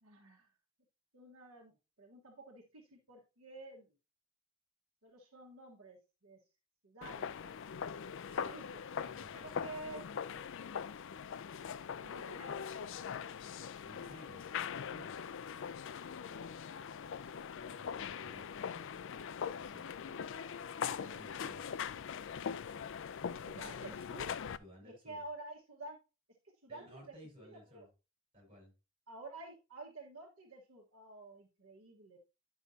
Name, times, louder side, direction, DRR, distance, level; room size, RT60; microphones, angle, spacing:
voice 1, 0.0-0.5 1.1-3.9 5.0-6.4 6.8-7.5 8.4-8.8 9.4-10.0 11.9-12.6 15.6-15.7 16.3-16.4 20.1-20.7 23.3-24.3 24.8-26.0 26.6-27.0 27.4-27.9 29.1-32.2, right 2 dB, 70° right, -1 dB, 1.5 m, -51 dB
sound 1, 7.0-24.6, left 7 dB, 60° left, 0.4 m, -42 dB
voice 2, 9.0-9.7 13.8-14.4 14.8-15.2 17.6-18.9 19.5-20.1 20.8-21.7 24.6-25.2 26.7-27.9 28.3-28.7, equal, 25° right, 0 dB, 5.3 m, -56 dB
10.0 x 6.2 x 2.8 m, 0.29 s
head